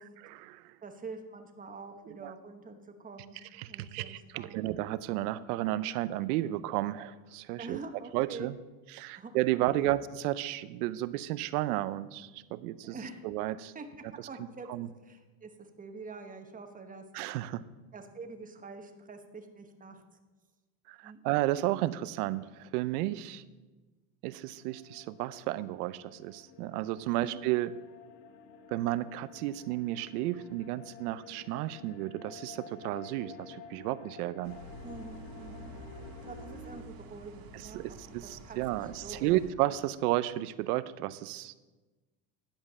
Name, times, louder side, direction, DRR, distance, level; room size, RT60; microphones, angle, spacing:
voice 1, 0.2-0.6 2.2-2.3 3.6-7.8 8.1-8.6 8.9-13.0 13.2-13.7 14.7-14.9 17.1-17.6 20.9-23.4 24.2-27.7 28.7-34.6 37.7-41.5, right 15 dB, 90° right, 16 dB, 0.6 m, -32 dB
voice 2, 0.8-3.4 3.7-4.7 7.6-8.5 9.1-9.3 9.8-9.9 12.8-13.2 13.7-13.9 14.3-17.0 17.9-20.0 21.0-21.2 27.1-27.4 34.8-35.7 36.2-38.0 38.4-39.4, right 4 dB, 20° right, 5 dB, 1.1 m, -46 dB
sound 1, 24.5-36.8, left 5 dB, 85° left, 1.0 m, -51 dB
sound 2, 34.4-39.5, right 1 dB, 50° right, 1.7 m, -48 dB
10.5 x 5.2 x 7.3 m, 1.2 s
supercardioid pair, 110°, 44 cm